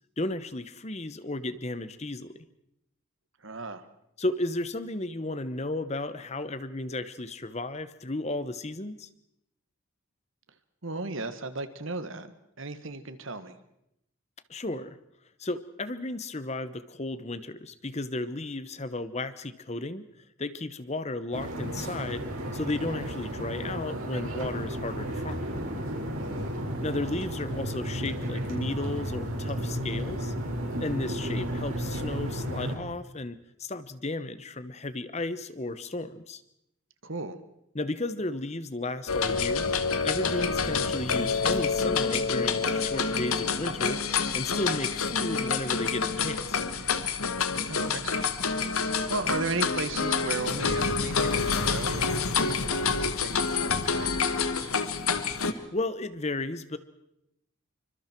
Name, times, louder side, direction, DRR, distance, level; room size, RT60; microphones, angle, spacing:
voice 1, 0.2-2.4 4.2-9.1 14.5-15.0 15.4-20.0 20.4-22.3 22.5-25.5 26.8-30.3 30.8-36.4 37.7-39.7 40.0-44.0 44.3-46.6 55.5-56.8, left 2 dB, 30° left, 13 dB, 1.0 m, -34 dB
voice 2, 3.4-3.8 10.8-13.6 26.1-26.6 37.0-37.4 47.6-48.3 48.7-54.7, right 3 dB, 65° right, 10 dB, 1.7 m, -36 dB
sound 1, 21.3-32.7, equal, 85° right, 5.4 m, -33 dB
sound 2, 39.1-55.5, left 5 dB, 85° left, 1.6 m, -27 dB
27.5 x 25.0 x 4.6 m, 0.81 s
head